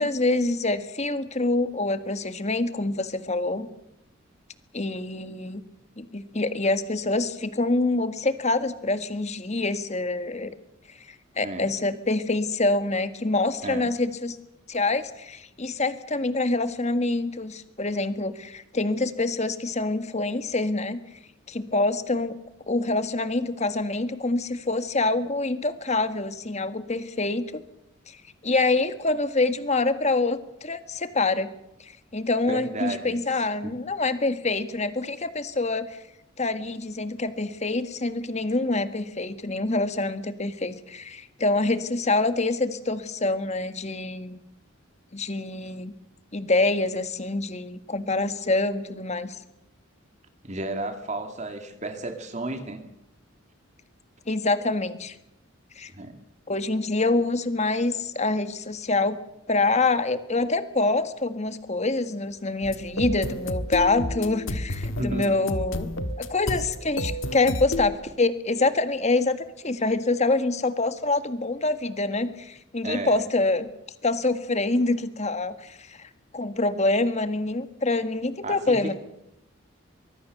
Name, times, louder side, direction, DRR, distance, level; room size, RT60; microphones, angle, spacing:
voice 1, 0.0-3.7 4.7-5.6 6.0-10.5 11.1-14.4 14.7-21.0 21.5-22.4 22.7-27.6 28.1-31.5 31.8-36.0 36.4-44.4 45.1-45.9 46.3-49.4 54.3-55.1 55.7-55.9 56.5-59.2 59.5-65.9 66.2-73.7 74.0-78.9, left 2 dB, 35° left, 10 dB, 1.7 m, -26 dB
voice 2, 32.5-33.2 33.6-33.7 50.4-52.8 55.9-56.2 65.0-65.4 72.8-73.2 78.4-78.9, right 2 dB, 35° right, 6 dB, 2.5 m, -33 dB
sound 1, 62.6-68.0, left 1 dB, 70° left, 1.6 m, -31 dB
24.0 x 22.0 x 6.8 m, 0.83 s
head